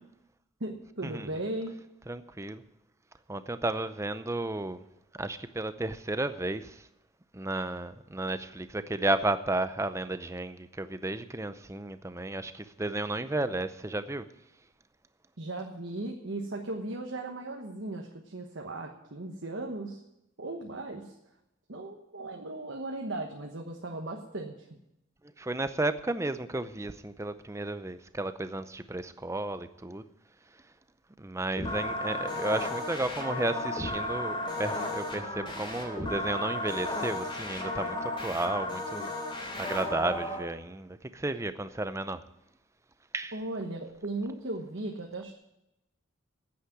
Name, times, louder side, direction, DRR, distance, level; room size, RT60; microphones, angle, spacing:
voice 1, 0.6-1.7 15.4-20.0 20.4-21.1 21.7-24.7 43.3-45.3, right 2 dB, 60° right, 2 dB, 1.2 m, -37 dB
voice 2, 2.1-2.6 3.3-4.8 5.1-6.9 7.3-14.2 25.4-30.0 31.2-39.1 39.6-42.2 43.1-43.3, right 2 dB, 15° right, 12 dB, 0.6 m, -33 dB
sound 1, 31.6-40.4, left 1 dB, 25° left, 3.0 m, -34 dB
9.6 x 8.6 x 9.9 m, 0.88 s
head